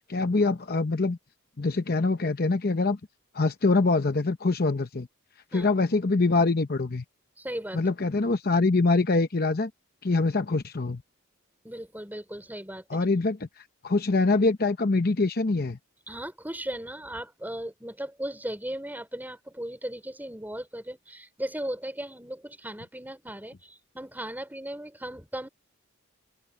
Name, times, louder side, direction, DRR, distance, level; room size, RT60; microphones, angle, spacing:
voice 1, 0.1-1.2 1.6-3.0 3.3-5.1 5.5-7.0 7.7-9.7 10.0-11.0 12.9-15.8, left 3 dB, 45° left, 0.8 m, -24 dB
voice 2, 7.4-7.8 11.6-13.0 16.1-25.5, right 1 dB, 10° right, 4.5 m, -37 dB
open air
head